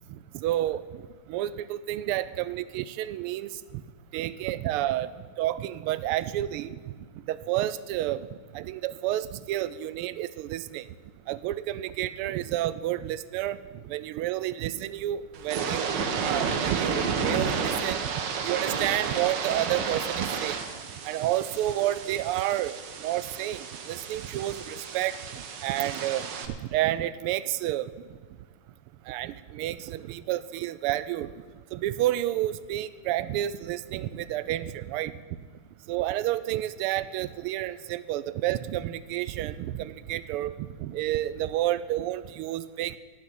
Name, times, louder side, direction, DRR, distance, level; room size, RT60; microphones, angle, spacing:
voice 1, 0.4-0.8 1.3-3.5 4.1-5.1 5.4-6.8 7.3-8.2 8.5-10.8 11.3-13.6 13.9-15.9 16.2-18.1 18.4-20.6 21.1-22.7 23.0-27.8 29.1-31.3 31.7-35.1 35.9-40.5 40.8-42.9, right 13 dB, 90° right, 16 dB, 1.5 m, -30 dB
sound 1, 15.3-26.5, right 5 dB, 60° right, 1.5 m, -32 dB
17.5 x 6.5 x 7.6 m, 1.6 s
omnidirectional pair, 2.4 m